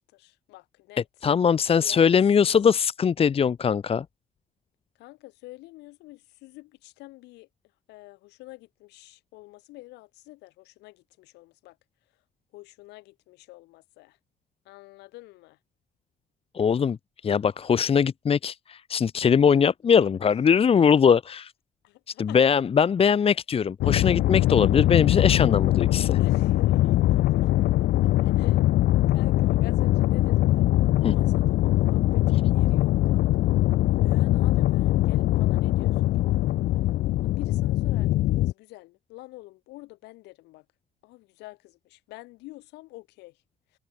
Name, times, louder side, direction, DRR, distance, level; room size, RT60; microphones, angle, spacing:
voice 1, 0.0-1.0 1.8-2.1 2.4-2.6 5.0-7.5 7.9-11.8 12.5-14.2 14.7-15.6 19.5-19.7 20.7-21.1 21.8-22.4 26.2-27.5 28.2-30.7 31.0-33.5 34.0-36.2 37.2-40.6 41.0-43.3, left 20 dB, 90° left, 7.6 m, -47 dB
voice 2, 1.2-4.0 16.5-17.0 17.2-21.5 22.2-26.2 31.0-31.1, left 7 dB, 35° left, 1.3 m, -21 dB
sound 1, 23.8-38.5, left 15 dB, 70° left, 0.9 m, -22 dB
cardioid pair, 110°, 17 cm